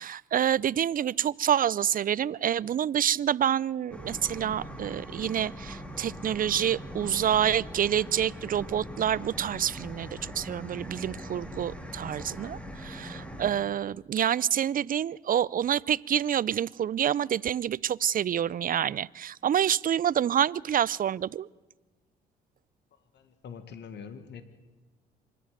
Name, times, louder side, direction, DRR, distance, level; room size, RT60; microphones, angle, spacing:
voice 1, 0.0-21.5, right 9 dB, 45° right, 23 dB, 0.5 m, -27 dB
sound 1, 3.9-13.5, equal, 5° left, 2.9 m, -41 dB
voice 2, 23.1-24.4, left 6 dB, 60° left, 10 dB, 1.9 m, -44 dB
25.5 x 11.0 x 9.5 m, 1.2 s
hypercardioid pair, 55°, 20 cm